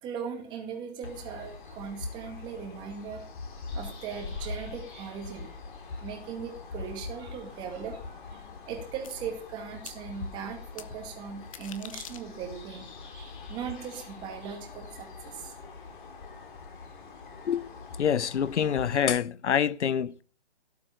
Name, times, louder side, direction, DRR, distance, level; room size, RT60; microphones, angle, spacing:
voice 1, 0.0-3.3 3.7-5.5 6.0-8.0 8.3-15.6, right 7 dB, 15° right, 2.1 m, -39 dB
sound 1, 1.0-19.1, left 4 dB, 45° left, 4.1 m, -43 dB
sound 2, 9.0-9.1 9.9-10.0 10.8-10.9 11.4-12.6, left 9 dB, 30° left, 1.1 m, -44 dB
voice 2, 18.0-20.2, left 8 dB, 75° left, 0.9 m, -26 dB
17.5 x 8.0 x 6.7 m
hypercardioid pair, 165°, 34 cm